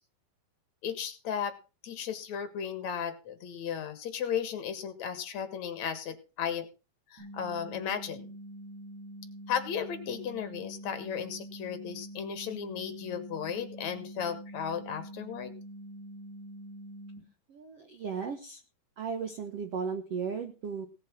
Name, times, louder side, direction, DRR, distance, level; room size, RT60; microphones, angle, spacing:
voice 1, 0.8-1.5 1.8-6.7 7.1-8.3 9.5-15.5, left 8 dB, 55° left, 9 dB, 2.5 m, -35 dB
sound 1, 7.2-17.2, right 1 dB, 90° right, 8.5 m, -45 dB
voice 2, 17.5-18.6 19.0-20.9, right 6 dB, 65° right, 7 dB, 1.6 m, -35 dB
18.0 x 7.5 x 6.2 m, 0.33 s
omnidirectional pair, 4.4 m